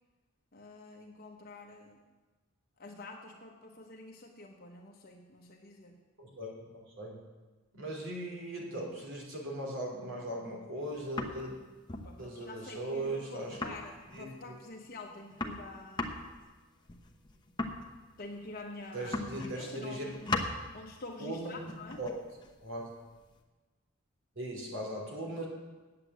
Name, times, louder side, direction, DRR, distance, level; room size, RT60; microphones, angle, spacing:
voice 1, 0.5-2.0 2.8-6.0 11.9-16.3 18.2-20.2 20.7-22.0, left 2 dB, 45° left, 1 dB, 1.0 m, -47 dB
voice 2, 6.2-7.2 7.7-11.5 12.2-13.6 14.1-14.5 18.9-20.1 21.2-22.1 22.6-22.9 24.3-25.4, right 1 dB, 65° right, -1 dB, 3.1 m, -39 dB
sound 1, 10.8-11.5 11.9-12.1 12.4-12.5 12.8-12.9 13.0-13.2 13.5-14.4 14.8-14.9 15.1-18.6 19.0-19.7 20.0-20.6 21.5-23.4, left 2 dB, 20° left, 1.0 m, -38 dB
8.7 x 8.3 x 8.0 m, 1.3 s
head